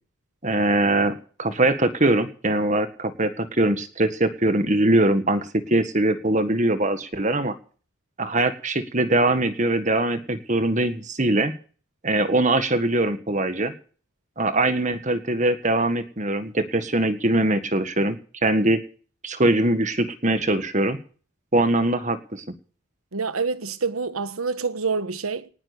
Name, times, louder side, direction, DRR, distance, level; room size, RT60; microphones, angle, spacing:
voice 1, 0.4-7.6 8.2-11.5 12.0-13.7 14.4-18.2 18.4-18.8 19.2-21.0 21.5-22.4, right 2 dB, 35° right, 1.7 m, -22 dB
voice 2, 23.1-25.5, right 4 dB, 85° right, 1.3 m, -27 dB
19.5 x 9.6 x 6.8 m
head